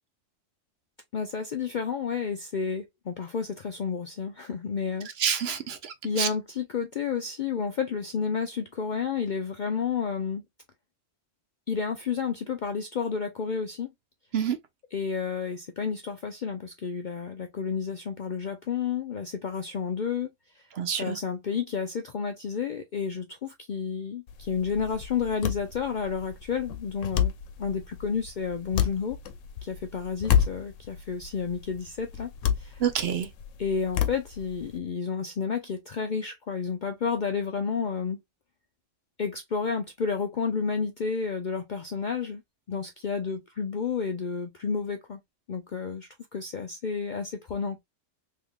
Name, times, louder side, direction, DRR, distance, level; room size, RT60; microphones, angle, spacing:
voice 1, 1.1-5.1 6.0-10.4 11.7-13.9 14.9-20.3 20.6-20.7 21.0-27.3 27.6-29.2 29.6-32.3 32.6-32.8 33.6-38.2 39.2-42.4 42.7-45.2 45.5-47.8, left 6 dB, 60° left, 0.5 m, -31 dB
voice 2, 5.2-6.3 14.3-14.6 20.8-21.2 32.8-33.3, right 8 dB, 60° right, 0.8 m, -27 dB
sound 1, 24.3-34.8, left 9 dB, 75° left, 1.0 m, -31 dB
3.6 x 3.4 x 2.2 m
omnidirectional pair, 1.3 m